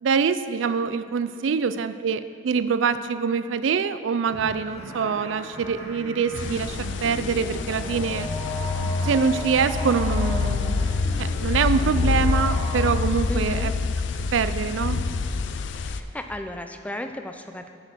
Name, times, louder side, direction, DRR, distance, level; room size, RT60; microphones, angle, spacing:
voice 1, 0.0-8.3 9.0-10.9 11.2-13.7 14.3-15.0, right 6 dB, 85° right, 12 dB, 0.4 m, -25 dB
sound 1, 4.3-12.3, equal, 35° left, 2.1 m, -42 dB
sound 2, 4.6-12.9, left 1 dB, 20° right, 2.6 m, -37 dB
sound 3, 6.3-16.0, left 4 dB, 70° left, 0.4 m, -26 dB
voice 2, 13.3-13.7 15.7-17.7, left 1 dB, 10° left, 6 dB, 0.4 m, -34 dB
8.6 x 6.7 x 5.8 m, 2.3 s
head